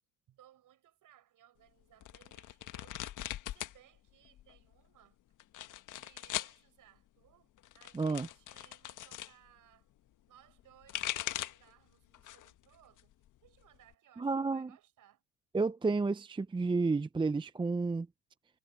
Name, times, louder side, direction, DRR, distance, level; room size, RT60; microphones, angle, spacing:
voice 1, 0.3-3.0 3.5-5.2 5.9-9.9 10.3-13.1 13.4-15.2, right 12 dB, 45° right, 7.0 m, -64 dB
sound 1, 2.0-3.8 4.1-4.7 5.4-6.6 7.6-9.3 10.6-11.7 12.1-12.6 13.0-13.9, left 13 dB, 45° left, 1.6 m, -40 dB
voice 2, 7.9-8.3 14.2-14.7 15.5-18.1, right 3 dB, 10° right, 0.8 m, -31 dB
hypercardioid pair, 90°, 43 cm